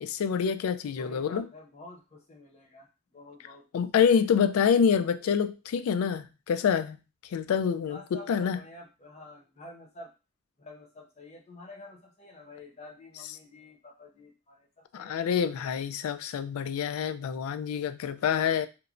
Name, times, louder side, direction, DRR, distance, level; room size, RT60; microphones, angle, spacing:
voice 1, 0.0-1.5 3.7-7.0 7.3-8.6 14.9-18.7, left 7 dB, 85° left, 0.3 m, -26 dB
voice 2, 1.0-3.7 7.9-10.1 10.6-14.7 14.9-15.3, left 2 dB, 30° left, 0.7 m, -49 dB
2.9 x 2.1 x 2.5 m
head